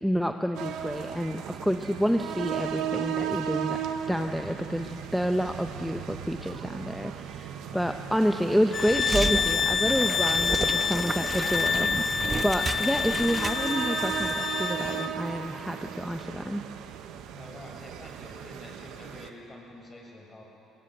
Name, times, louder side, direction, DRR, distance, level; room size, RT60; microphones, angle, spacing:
voice 1, 0.0-3.8 4.1-16.6, equal, ahead, 5 dB, 1.0 m, -29 dB
sound 1, 0.5-19.3, right 9 dB, 75° right, 1.3 m, -36 dB
voice 2, 7.5-7.9 17.3-20.4, left 1 dB, 25° left, 0 dB, 7.4 m, -47 dB
sound 2, 8.7-15.1, left 6 dB, 45° left, 0.5 m, -28 dB
sound 3, 8.8-14.4 14.6-14.9, right 3 dB, 30° right, 1.2 m, -33 dB
22.0 x 19.0 x 8.1 m, 2.9 s
supercardioid pair, 80°, 0 cm